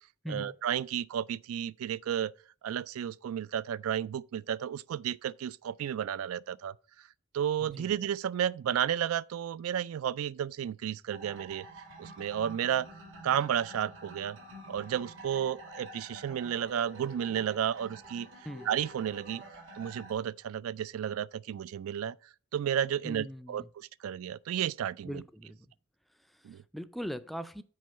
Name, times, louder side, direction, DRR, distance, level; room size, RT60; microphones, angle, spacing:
voice 1, 0.3-2.3 2.6-6.7 7.3-11.7 12.0-12.9 13.2-14.4 14.7-18.3 18.7-19.4 19.8-22.2 22.5-25.2 26.4-26.6, right 9 dB, 80° right, 0.3 m, -32 dB
sound 1, 11.1-20.1, right 1 dB, 60° right, 1.6 m, -48 dB
voice 2, 23.0-23.7 25.0-25.6 26.3-27.6, equal, ahead, 0.3 m, -41 dB
6.3 x 4.5 x 6.6 m
head